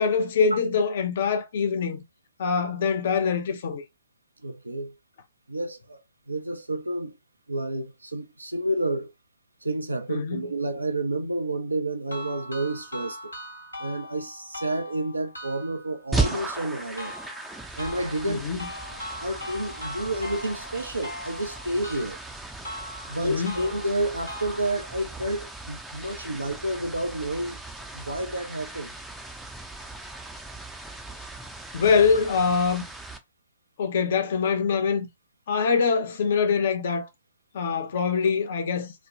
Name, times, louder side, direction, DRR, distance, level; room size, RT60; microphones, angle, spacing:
voice 1, 0.0-2.0 2.4-3.8 10.1-10.4 18.3-18.7 23.2-23.5 31.7-32.8 33.8-35.1 35.5-37.1 37.5-38.9, left 5 dB, 50° left, 0.6 m, -24 dB
voice 2, 4.4-4.9 5.5-6.0 6.3-7.1 7.5-9.1 9.6-13.3 13.8-17.1 17.8-18.4 19.2-22.2 23.1-27.6 27.9-28.9, right 1 dB, 80° right, 0.6 m, -30 dB
sound 1, 12.1-25.1, equal, 85° left, 1.1 m, -40 dB
sound 2, 16.1-33.2, right 2 dB, 5° right, 0.5 m, -37 dB
3.1 x 2.2 x 2.6 m
figure-of-eight pair, 120°, 0 cm